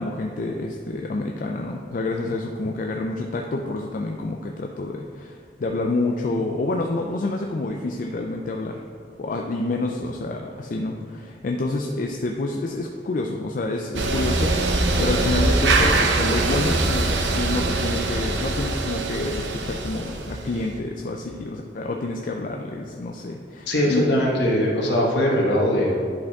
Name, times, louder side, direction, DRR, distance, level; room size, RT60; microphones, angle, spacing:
voice 1, 0.0-8.8 9.2-17.1 17.3-24.2, left 2 dB, 45° left, 2 dB, 0.4 m, -28 dB
sound 1, 13.9-20.8, right 2 dB, 75° right, 0.7 m, -23 dB
voice 2, 23.7-26.0, equal, 65° left, -2 dB, 1.4 m, -21 dB
10.5 x 5.2 x 3.5 m, 2.3 s
head